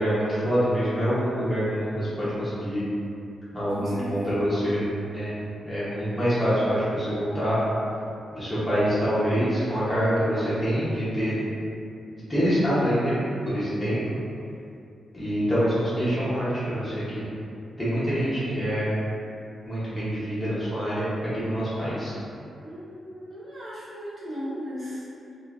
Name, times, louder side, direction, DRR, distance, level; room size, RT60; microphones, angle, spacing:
voice 1, 0.0-2.8 3.5-4.8 5.1-5.3 5.6-7.6 8.3-11.3 12.1-13.1 13.4-14.0 15.1-17.3 17.8-18.9 19.7-22.1, equal, 10° left, -13 dB, 0.8 m, -25 dB
voice 2, 3.7-4.5 18.1-18.5 22.6-25.4, equal, 35° right, -9 dB, 0.8 m, -37 dB
2.9 x 2.4 x 2.4 m, 2.6 s
wide cardioid pair, 135°, 0 cm